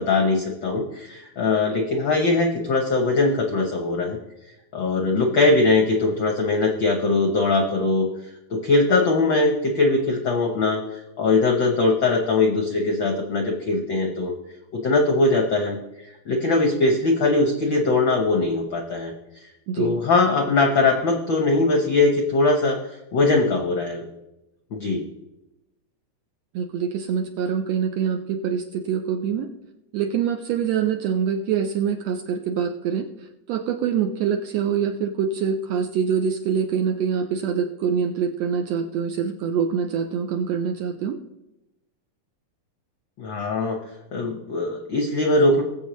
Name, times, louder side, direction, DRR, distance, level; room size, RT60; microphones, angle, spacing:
voice 1, 0.0-4.2 4.7-8.1 8.5-14.3 14.7-19.1 19.4-22.8 23.1-24.0 24.7-25.0 43.2-43.8 44.1-45.6, left 3 dB, 70° left, 3 dB, 1.1 m, -21 dB
voice 2, 19.7-20.0 26.5-29.5 29.9-33.1 33.5-41.2, right 7 dB, 75° right, 6 dB, 1.6 m, -25 dB
20.0 x 7.6 x 3.1 m, 0.94 s
omnidirectional pair, 3.5 m